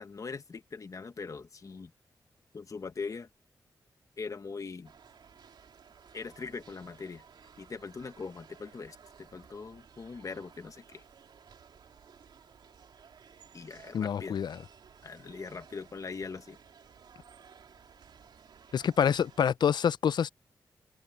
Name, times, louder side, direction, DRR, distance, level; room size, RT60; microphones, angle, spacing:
voice 1, 0.0-1.9 2.5-3.3 4.2-4.9 6.1-7.2 7.6-11.0 13.5-14.4 15.0-16.6, left 4 dB, 50° left, 1.4 m, -41 dB
sound 1, 4.8-19.4, right 7 dB, 90° right, 3.0 m, -56 dB
voice 2, 13.9-14.6 18.7-20.3, left 8 dB, 75° left, 0.4 m, -27 dB
wide cardioid pair, 100°, 7 cm